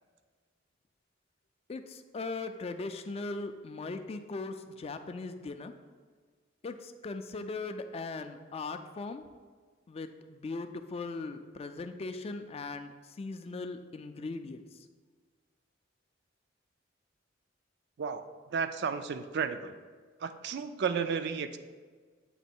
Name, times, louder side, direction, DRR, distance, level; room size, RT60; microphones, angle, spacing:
voice 1, 1.7-5.7 6.6-9.2 9.9-14.8, left 3 dB, 30° left, 9 dB, 0.3 m, -39 dB
voice 2, 18.5-19.8 20.2-21.6, right 6 dB, 60° right, 9 dB, 0.4 m, -33 dB
8.1 x 3.0 x 4.4 m, 1.5 s
head